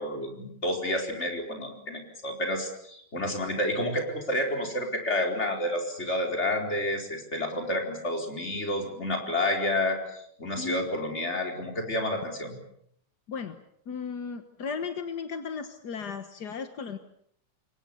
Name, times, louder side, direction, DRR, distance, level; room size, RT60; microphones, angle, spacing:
voice 1, 0.0-12.5, left 1 dB, 20° left, 2 dB, 4.7 m, -30 dB
voice 2, 10.6-10.9 13.3-13.6 13.9-17.0, left 5 dB, 50° left, 8 dB, 1.3 m, -35 dB
28.0 x 23.5 x 7.0 m, 0.70 s
omnidirectional pair, 3.3 m